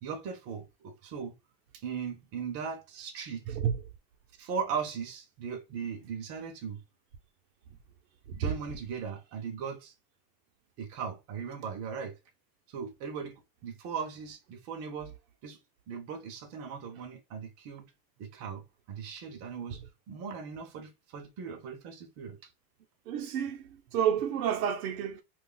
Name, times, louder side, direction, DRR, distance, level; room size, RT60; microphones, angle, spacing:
voice 1, 0.0-1.3 1.7-3.4 4.4-6.8 8.3-9.9 10.8-12.2 12.7-13.3 13.6-15.2 15.4-15.6 15.9-17.9 18.2-18.6 18.9-19.8 20.1-22.4, right 6 dB, 30° right, 0.7 m, -38 dB
voice 2, 3.5-3.8 8.3-8.5 19.7-19.9 23.1-25.2, right 9 dB, 65° right, 0.8 m, -30 dB
2.4 x 2.4 x 3.8 m
supercardioid pair, 150°, 47 cm